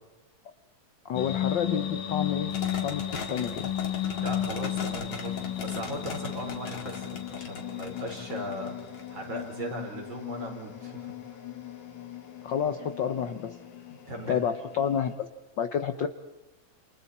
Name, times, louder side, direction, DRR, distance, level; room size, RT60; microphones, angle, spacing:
voice 1, 1.0-2.5 2.8-3.7 12.4-13.6 14.3-15.3 15.6-16.1, left 8 dB, 75° left, 9 dB, 1.0 m, -29 dB
sound 1, 1.2-15.2, left 11 dB, 90° left, 3.3 m, -35 dB
sound 2, 2.5-9.5, left 4 dB, 55° left, 3.1 m, -39 dB
voice 2, 4.2-11.1 13.9-14.4, right 1 dB, 40° right, 2 dB, 4.9 m, -38 dB
29.0 x 28.0 x 4.3 m, 1.1 s
omnidirectional pair, 3.3 m